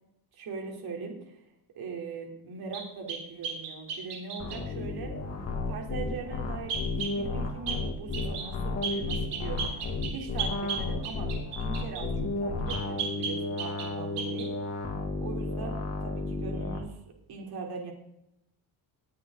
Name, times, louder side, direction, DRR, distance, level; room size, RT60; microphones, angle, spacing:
voice 1, 0.3-1.4 1.8-11.3 11.6-14.5 15.2-17.0 17.3-17.9, right 4 dB, 60° right, 1 dB, 3.6 m, -40 dB
sound 1, 2.7-4.6 6.7-7.2 7.7-7.8 8.1-8.5 8.8-12.1 12.7-13.9 14.2-14.5, right 5 dB, 80° right, 3.6 m, -35 dB
sound 2, 4.4-16.8, left 3 dB, 35° left, 2.3 m, -33 dB
19.5 x 8.5 x 3.9 m, 0.81 s
cardioid pair, 125°, 41 cm